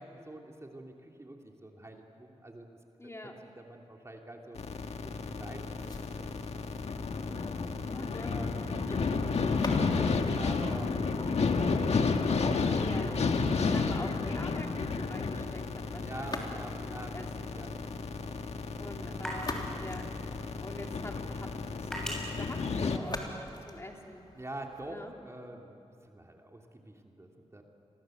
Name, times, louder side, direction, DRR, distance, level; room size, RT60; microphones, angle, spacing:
voice 1, 0.0-2.7 3.2-4.6 5.0-5.9 6.4-6.5 7.2-7.6 8.2-8.9 9.8-11.7 12.5-12.8 14.4-14.5 16.0-17.8 18.1-18.4 18.8-19.3 24.3-27.6, right 1 dB, 25° right, 1 dB, 3.0 m, -46 dB
voice 2, 3.0-3.3 7.8-8.3 8.9-9.0 12.8-13.2 13.6-17.5 18.8-20.0 20.6-21.5 21.8-24.2 24.9-25.1, left 1 dB, 25° left, 1 dB, 3.4 m, -45 dB
sound 1, 4.6-23.0, left 4 dB, 75° left, 1.7 m, -32 dB
sound 2, 5.8-11.8 16.2-17.0 19.0-21.0 23.0-25.0, left 2 dB, 40° left, 3.3 m, -44 dB
sound 3, 16.9-23.6, equal, 5° left, 7.9 m, -46 dB
29.0 x 23.5 x 7.9 m, 2.7 s
cardioid pair, 60°, 11 cm